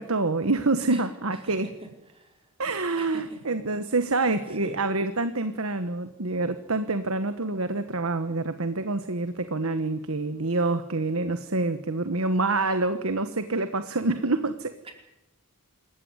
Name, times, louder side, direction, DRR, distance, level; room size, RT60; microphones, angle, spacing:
voice 1, 0.0-1.7 2.6-14.7, right 3 dB, 70° right, 10 dB, 1.3 m, -27 dB
voice 2, 0.9-2.5 3.0-3.6 4.1-4.8 14.8-14.9, right 2 dB, 25° right, 3 dB, 4.8 m, -47 dB
27.0 x 15.0 x 9.8 m, 0.94 s
head